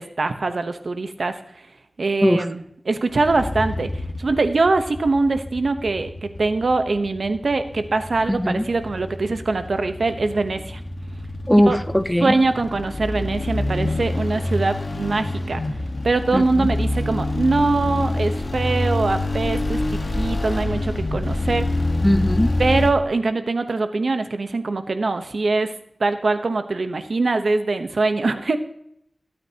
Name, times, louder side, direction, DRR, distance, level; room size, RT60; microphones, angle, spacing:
voice 1, 0.0-1.4 2.0-10.8 11.5-11.8 12.2-15.6 16.0-21.7 22.6-25.7 26.0-28.6, right 3 dB, 90° right, 9 dB, 1.0 m, -23 dB
sound 1, 3.1-22.9, left 2 dB, 55° left, 1.5 m, -27 dB
voice 2, 8.3-8.7 11.5-12.3 16.3-16.4 22.0-22.5, equal, 10° left, 12 dB, 0.5 m, -18 dB
22.5 x 8.9 x 2.9 m, 0.73 s
wide cardioid pair, 70°, 0 cm